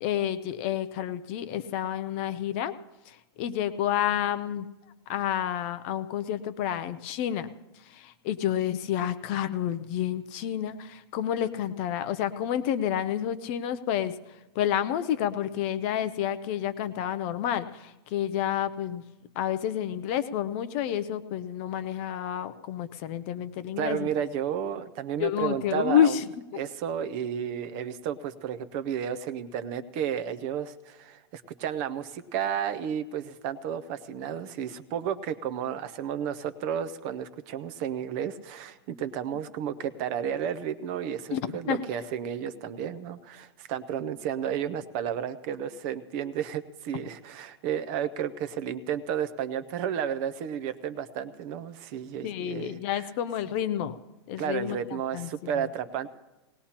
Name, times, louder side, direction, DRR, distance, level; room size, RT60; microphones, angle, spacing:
voice 1, 0.0-2.7 3.0-4.7 5.1-7.5 7.7-19.0 19.4-24.1 25.2-26.6 41.3-41.8 52.2-54.0 54.3-55.7, left 10 dB, 25° left, 12 dB, 0.4 m, -29 dB
voice 2, 23.8-26.1 26.6-52.8 54.4-56.1, right 9 dB, 25° right, 12 dB, 0.5 m, -32 dB
19.5 x 19.0 x 2.9 m, 1.1 s
supercardioid pair, 180°, 14 cm